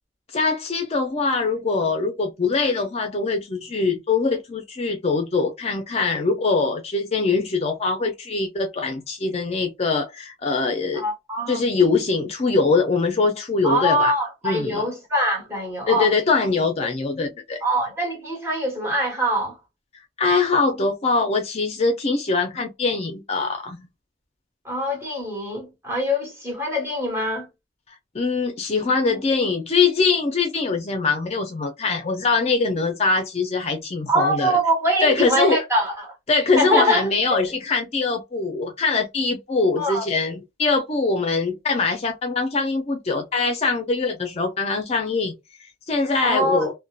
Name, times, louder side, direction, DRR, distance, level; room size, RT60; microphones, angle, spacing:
voice 1, 0.3-11.0 11.5-14.1 14.4-14.8 15.9-17.6 20.2-23.9 28.1-34.6 35.0-35.6 36.3-45.3 45.9-46.7, left 4 dB, 35° left, 0.4 m, -22 dB
voice 2, 10.9-11.6 13.6-16.1 17.6-19.6 24.6-27.5 34.1-36.1 36.6-37.4 39.8-40.1 46.2-46.7, equal, 15° right, 1.2 m, -23 dB
2.6 x 2.1 x 2.3 m
head